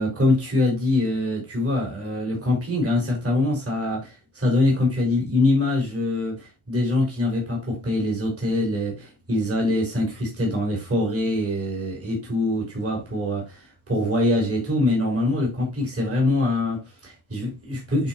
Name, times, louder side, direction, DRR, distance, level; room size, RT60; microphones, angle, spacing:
voice 1, 0.0-18.1, left 2 dB, 30° right, 4.0 m, -24 dB
11.0 x 4.6 x 3.0 m
wide cardioid pair, 130°, 49 cm